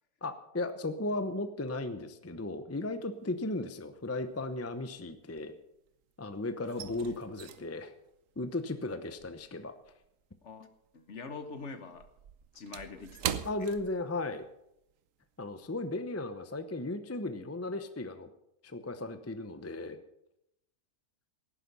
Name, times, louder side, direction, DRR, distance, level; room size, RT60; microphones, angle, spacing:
voice 1, 0.2-5.6 6.2-7.9 8.4-9.7 13.4-14.4 15.4-18.3 18.6-20.0, left 2 dB, 15° left, 9 dB, 0.5 m, -36 dB
sound 1, 3.2-3.8 4.0-6.0 6.3-11.0 11.3-14.6 14.9-15.1 15.6-15.8, right 9 dB, 60° right, 1.0 m, -42 dB
voice 2, 6.8-7.2 10.4-10.7 10.9-12.1 12.5-13.7, left 4 dB, 50° left, 9 dB, 1.3 m, -45 dB
17.5 x 10.0 x 5.5 m, 0.80 s
omnidirectional pair, 1.7 m